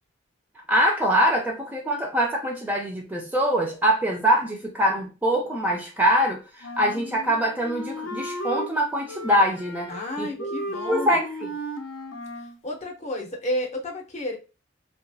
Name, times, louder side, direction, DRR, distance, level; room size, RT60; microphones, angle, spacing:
voice 1, 0.7-9.9 10.2-10.3 10.9-11.3, equal, 10° right, 0.3 m, -23 dB
Wind instrument woodwind instrument, 6.6-8.7 9.1-10.1 10.4-12.6, equal, 80° left, 0.5 m, -34 dB
voice 2, 9.9-11.2 12.4-14.4, left 1 dB, 35° left, 0.6 m, -31 dB
2.8 x 2.3 x 2.5 m
head